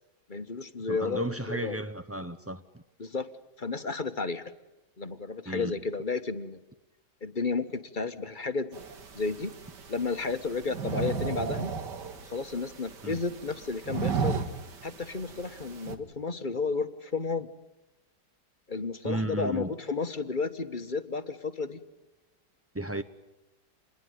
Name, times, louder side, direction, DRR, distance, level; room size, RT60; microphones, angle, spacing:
voice 1, 0.3-1.8 3.0-3.3 3.6-4.5 5.0-6.6 7.2-8.8 9.1-9.5 9.9-11.7 12.2-14.4 14.8-17.5 18.7-21.8, left 4 dB, 30° left, 1.3 m, -32 dB
voice 2, 0.9-2.6 5.5-5.7 13.0-13.2 19.0-19.7 22.7-23.0, right 1 dB, 20° right, 0.4 m, -33 dB
sound 1, 8.7-16.0, right 6 dB, 75° right, 2.5 m, -35 dB
28.5 x 21.5 x 9.4 m
omnidirectional pair, 1.9 m